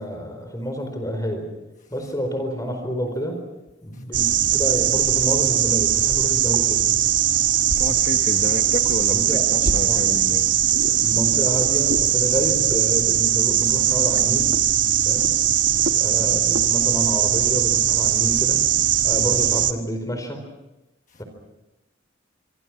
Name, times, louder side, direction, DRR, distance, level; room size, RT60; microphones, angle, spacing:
voice 1, 0.0-1.5 1.9-3.4 3.8-7.0 7.9-8.0 9.1-9.5 9.8-10.0 11.0-14.5 15.0-15.3 16.0-18.6 19.0-20.4 21.2-21.3, equal, 20° left, 6 dB, 4.4 m, -28 dB
sound 1, 4.1-19.7, right 10 dB, 65° right, 1.3 m, -20 dB
voice 2, 7.6-10.5 15.8-16.0 21.1-21.2, left 2 dB, 40° left, 4 dB, 1.3 m, -31 dB
27.0 x 25.0 x 6.1 m, 0.98 s
head